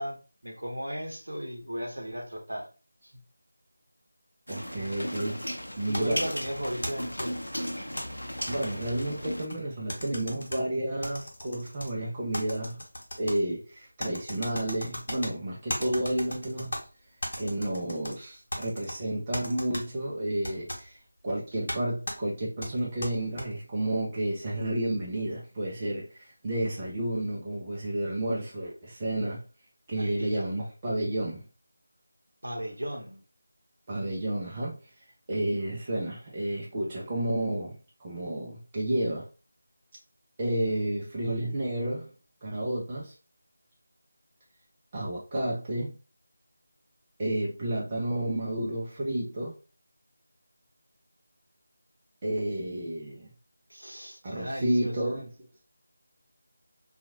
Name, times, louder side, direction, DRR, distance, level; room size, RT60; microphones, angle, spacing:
voice 1, 0.0-2.7 3.0-3.1 5.9-7.4 30.0-30.4 32.4-33.2 53.7-55.0, equal, 75° right, 0.8 m, -36 dB
sound 1, 4.5-9.5, equal, 85° left, 0.6 m, -36 dB
voice 2, 4.5-5.4 5.8-6.2 8.5-12.8 13.2-16.7 17.4-21.0 21.2-29.4 29.9-31.4 33.9-34.8 35.3-39.2 40.4-42.1 42.4-43.1 44.9-45.9 47.2-49.5 52.2-53.3 54.2-55.3, right 1 dB, 25° right, 0.7 m, -31 dB
sound 2, 5.9-8.0 8.5-9.6 9.9-10.6 11.0-11.9 12.3-13.4 14.0-15.3 15.7-16.8 17.2-18.1 18.5-19.0 19.3-19.8 20.4-20.8 21.7-21.8 22.1-22.2 22.6-23.4, left 1 dB, 55° left, 0.9 m, -36 dB
2.9 x 2.4 x 2.6 m
figure-of-eight pair, 165°, 0 cm